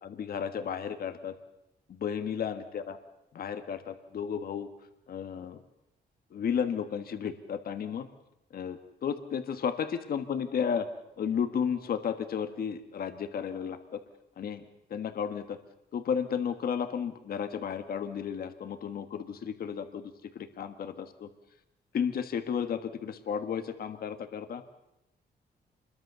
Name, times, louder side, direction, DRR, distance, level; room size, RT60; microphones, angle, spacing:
voice 1, 0.0-1.3 1.9-3.0 3.3-4.7 5.1-5.6 6.3-8.1 8.5-10.9 11.2-14.0 14.4-14.6 14.9-15.6 15.9-21.3 21.9-24.6, left 7 dB, 60° left, 9 dB, 1.5 m, -33 dB
27.5 x 22.0 x 6.9 m, 0.87 s
wide cardioid pair, 175°, 17 cm